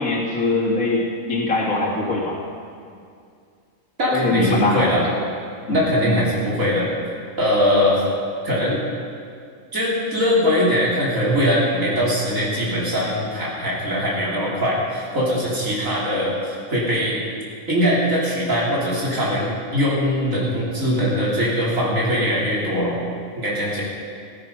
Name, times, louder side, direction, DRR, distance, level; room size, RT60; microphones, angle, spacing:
voice 1, 0.0-2.4 4.1-5.1 5.7-5.8 6.1-6.2, left 2 dB, 85° left, -3 dB, 2.5 m, -22 dB
voice 2, 4.0-5.1 5.7-6.9 7.4-8.0 8.4-8.8 9.7-17.2 17.7-23.0 23.4-23.8, equal, 75° right, -6 dB, 3.6 m, -21 dB
15.5 x 15.0 x 5.4 m, 2.3 s
omnidirectional pair, 1.4 m